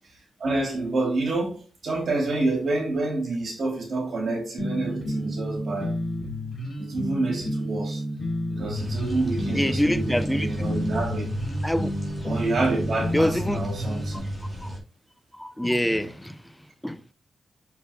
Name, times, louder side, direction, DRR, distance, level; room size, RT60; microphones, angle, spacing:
voice 1, 0.1-5.9 6.8-8.0 8.5-11.3 12.2-14.3, right 2 dB, 60° right, 2.9 m, -28 dB
sound 1, 4.6-14.2, equal, 35° left, 4.0 m, -31 dB
sound 2, 8.7-14.8, equal, 10° right, 3.7 m, -32 dB
voice 2, 9.5-10.7 11.6-11.9 13.1-13.6 14.6-14.8 15.3-17.0, equal, 5° left, 0.6 m, -26 dB
7.9 x 6.7 x 2.3 m
cardioid pair, 100°, 0 cm